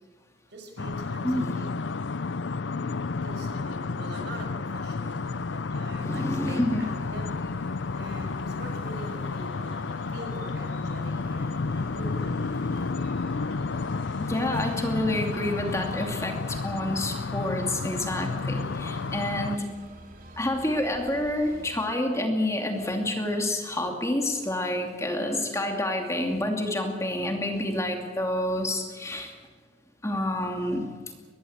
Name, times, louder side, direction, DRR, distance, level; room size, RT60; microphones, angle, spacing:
voice 1, 0.5-1.7 3.2-7.3 7.9-12.7, right 1 dB, 65° right, 4 dB, 6.2 m, -43 dB
sound 1, 0.8-19.6, left 4 dB, 85° left, 0.6 m, -31 dB
voice 2, 6.0-6.8 14.2-19.7 20.4-29.3 30.0-30.9, left 1 dB, 15° left, 3 dB, 2.7 m, -28 dB
sound 2, 6.6-21.9, right 1 dB, 50° right, 3.5 m, -47 dB
23.5 x 19.5 x 8.1 m, 1.5 s
head